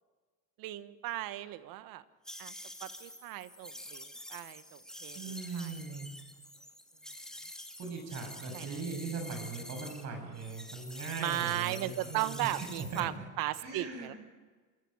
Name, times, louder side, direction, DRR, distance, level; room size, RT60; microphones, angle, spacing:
voice 1, 0.6-2.0 2.4-2.5 2.8-5.7 8.5-8.8 11.2-14.1, right 15 dB, 65° right, 13 dB, 1.4 m, -36 dB
sound 1, 2.2-10.0 10.3-13.0, left 1 dB, ahead, 2.5 m, -47 dB
voice 2, 5.1-6.1 7.8-13.2 13.6-14.2, right 4 dB, 45° right, 3 dB, 7.2 m, -40 dB
27.5 x 14.0 x 8.8 m, 1.4 s
supercardioid pair, 105°, 37 cm